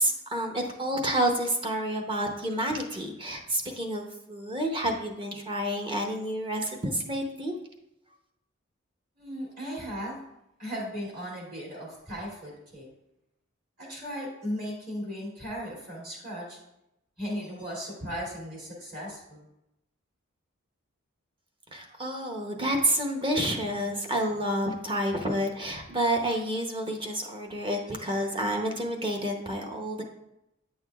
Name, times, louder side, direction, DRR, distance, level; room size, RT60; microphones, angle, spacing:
voice 1, 0.0-7.5 21.7-30.0, right 1 dB, 25° right, 2 dB, 0.7 m, -29 dB
voice 2, 9.2-10.2 10.6-12.9 13.8-16.6 17.2-19.5, equal, 45° right, -3 dB, 2.6 m, -36 dB
8.9 x 6.5 x 2.3 m, 0.84 s
head